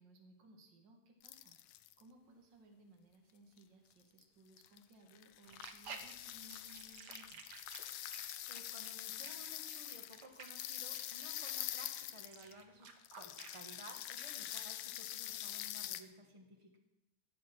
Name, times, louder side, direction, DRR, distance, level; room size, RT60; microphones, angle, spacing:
voice 1, 0.0-1.5 2.0-7.4, right 1 dB, 40° right, 2 dB, 2.3 m, -62 dB
sound 1, 1.2-2.0 3.6-3.7 4.2-4.3 4.6-4.8 5.1-12.6 13.0-16.0, left 13 dB, 80° left, 1.7 m, -45 dB
sound 2, 5.4-13.8 14.2-14.3, right 5 dB, 65° right, 1.0 m, -54 dB
voice 2, 8.0-16.8, right 1 dB, 15° right, 2 dB, 1.1 m, -56 dB
18.0 x 7.8 x 6.1 m, 0.89 s
omnidirectional pair, 3.5 m